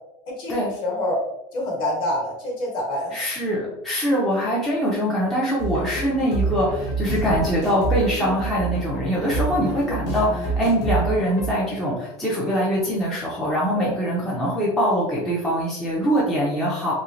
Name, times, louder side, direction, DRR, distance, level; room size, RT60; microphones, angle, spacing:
voice 1, 0.3-1.2 1.5-3.2 9.6-10.0 13.8-13.9, left 1 dB, 35° left, -2 dB, 1.0 m, -27 dB
voice 2, 3.1-16.9, equal, 5° left, -7 dB, 0.4 m, -23 dB
sound 1, 5.6-11.5, right 3 dB, 75° left, 1.0 m, -27 dB
3.1 x 2.7 x 2.5 m, 0.91 s
cardioid pair, 170°, 14 cm